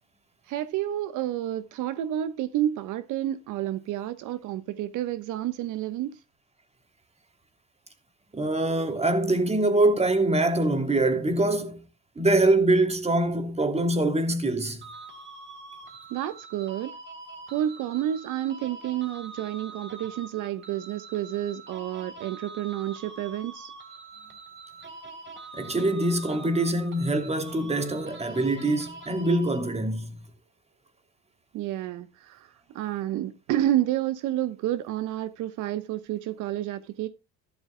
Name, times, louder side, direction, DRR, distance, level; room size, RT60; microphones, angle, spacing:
voice 1, 0.5-6.2 16.1-16.9 17.5-23.7 31.5-37.1, right 12 dB, 75° right, 1.1 m, -30 dB
voice 2, 8.3-11.8 12.2-14.8 25.5-30.2, right 2 dB, 20° right, 2.8 m, -24 dB
sound 1, 14.8-30.0, right 3 dB, 40° right, 3.4 m, -44 dB
14.0 x 12.0 x 2.2 m
supercardioid pair, 80°, 31 cm